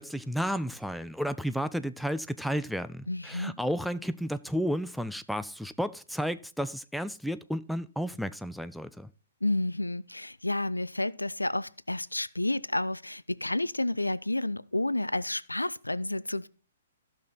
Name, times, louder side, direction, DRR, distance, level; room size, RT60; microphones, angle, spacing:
voice 1, 0.0-9.1, equal, ahead, 0.4 m, -32 dB
voice 2, 3.1-3.5 9.4-16.5, left 2 dB, 80° left, 0.4 m, -30 dB
14.5 x 5.8 x 4.0 m
figure-of-eight pair, 120°, 0 cm